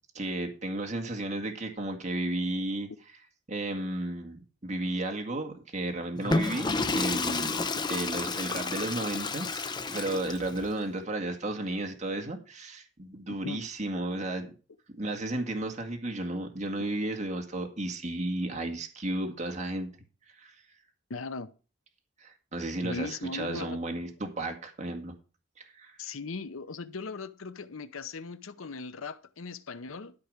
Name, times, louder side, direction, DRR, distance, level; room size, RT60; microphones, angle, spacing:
voice 1, 0.1-2.9 3.5-7.5 7.9-14.5 15.0-19.9 20.4-20.6 22.2-25.1 25.6-26.0, right 1 dB, 35° right, 2.0 m, -33 dB
Water / Toilet flush, 6.1-10.7, left 3 dB, 20° left, 0.8 m, -31 dB
voice 2, 21.1-21.5 22.8-23.8 26.0-30.1, left 4 dB, 85° left, 0.8 m, -38 dB
13.0 x 4.8 x 6.5 m
head